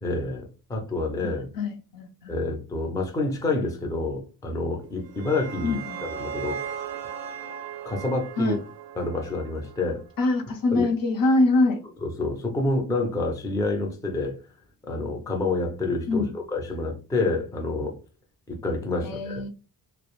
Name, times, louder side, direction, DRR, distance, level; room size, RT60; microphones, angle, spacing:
voice 1, 0.0-1.5 2.3-5.8 6.2-6.8 7.9-8.6 9.0-10.0 10.7-10.9 12.0-14.4 14.9-18.0 18.5-19.4, left 2 dB, 10° left, 1 dB, 0.4 m, -28 dB
voice 2, 1.5-2.3 5.6-6.0 8.4-8.6 10.2-11.8 16.1-16.3 19.0-19.5, left 2 dB, 60° left, 5 dB, 0.7 m, -24 dB
sound 1, 4.8-10.0, right 8 dB, 50° right, 0.5 m, -37 dB
2.3 x 2.0 x 2.9 m, 0.32 s
cardioid pair, 140°, 39 cm